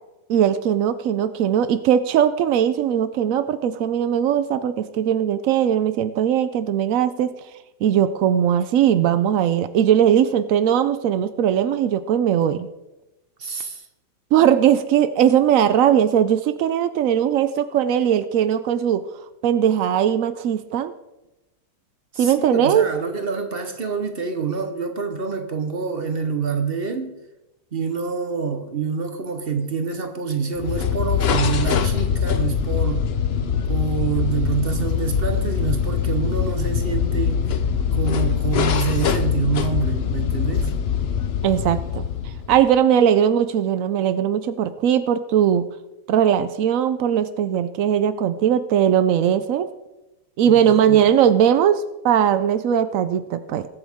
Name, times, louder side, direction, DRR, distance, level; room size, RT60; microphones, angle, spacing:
voice 1, 0.3-7.3 7.8-12.7 14.3-19.0 19.4-20.9 22.2-22.8 41.4-45.7 46.1-49.7 50.4-53.7, right 9 dB, 80° right, 0.7 m, -19 dB
voice 2, 13.4-13.9 22.1-27.2 27.7-33.1 33.7-37.5 37.9-40.7 50.4-51.0, right 5 dB, 40° right, 0.9 m, -26 dB
sound 1, 30.6-42.7, left 7 dB, 75° left, 0.5 m, -23 dB
21.0 x 8.7 x 3.6 m
omnidirectional pair, 2.1 m